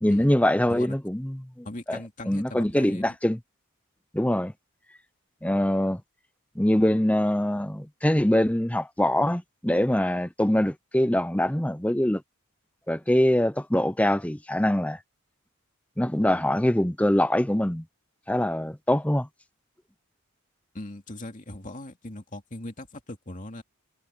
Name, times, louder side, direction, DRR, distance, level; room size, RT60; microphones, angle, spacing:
voice 1, 0.0-2.0 2.3-3.4 4.1-4.5 5.4-6.0 6.6-12.2 12.9-15.0 16.0-17.8 18.3-19.3, left 1 dB, 5° left, 0.7 m, -23 dB
voice 2, 1.6-3.2 20.7-23.6, left 1 dB, 35° left, 2.6 m, -39 dB
head